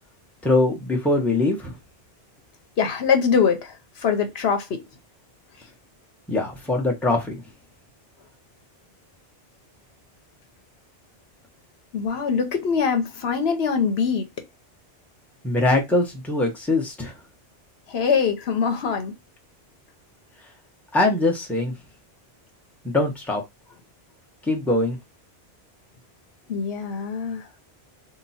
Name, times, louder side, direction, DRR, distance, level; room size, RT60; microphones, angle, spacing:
voice 1, 0.4-1.7 6.3-7.4 15.4-17.1 20.9-21.7 22.8-23.4 24.4-25.0, left 2 dB, ahead, 0.9 m, -22 dB
voice 2, 2.8-4.8 11.9-14.3 17.9-19.1 26.5-27.5, left 6 dB, 75° left, 1.0 m, -23 dB
2.9 x 2.3 x 4.0 m
omnidirectional pair, 1.1 m